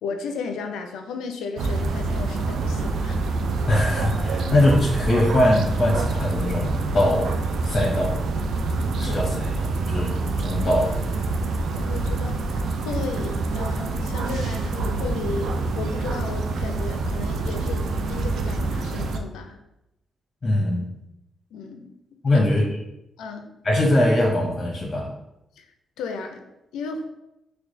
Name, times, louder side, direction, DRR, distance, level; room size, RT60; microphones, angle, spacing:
voice 1, 0.0-3.3 9.0-9.3 11.7-19.6 21.5-21.9 22.3-22.4 23.2-23.5 25.6-25.7 26.0-26.4 26.7-27.1, left 4 dB, 85° left, 5 dB, 0.4 m, -34 dB
sound 1, 1.6-19.2, right 3 dB, 75° right, 0.3 m, -26 dB
voice 2, 3.7-7.3 7.6-8.3 9.0-10.9 20.4-20.9 22.2-22.7 23.6-25.1, left 1 dB, 40° left, -1 dB, 0.7 m, -22 dB
4.5 x 2.2 x 2.6 m, 0.90 s
supercardioid pair, 50°, 0 cm